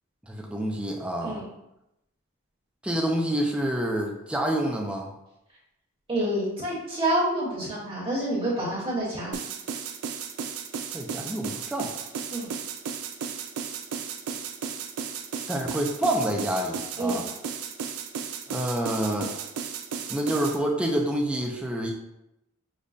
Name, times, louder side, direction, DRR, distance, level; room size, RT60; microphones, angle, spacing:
voice 1, 0.3-1.4 2.8-5.1 10.9-11.9 15.5-17.3 18.5-19.3 20.1-21.9, right 1 dB, 5° right, -1 dB, 0.3 m, -27 dB
voice 2, 6.1-9.3 12.3-12.5 17.0-17.2, right 1 dB, 25° right, -7 dB, 1.2 m, -28 dB
sound 1, 9.3-20.6, right 6 dB, 90° right, 0.4 m, -34 dB
5.2 x 2.1 x 2.5 m, 0.88 s
head